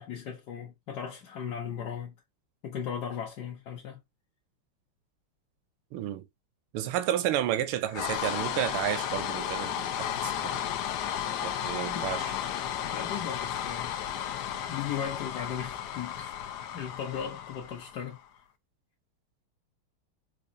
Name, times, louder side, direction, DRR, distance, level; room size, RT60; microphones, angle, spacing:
voice 1, 0.0-2.1 2.6-4.0 11.9-12.0 12.9-14.0 14.7-16.3 16.7-18.2, left 8 dB, 60° left, 1.1 m, -37 dB
voice 2, 5.9-6.2 6.7-10.6 11.4-12.3, right 12 dB, 80° right, 1.5 m, -31 dB
sound 1, 7.9-18.2, left 10 dB, 80° left, 0.9 m, -34 dB
5.1 x 2.3 x 2.6 m
omnidirectional pair, 2.4 m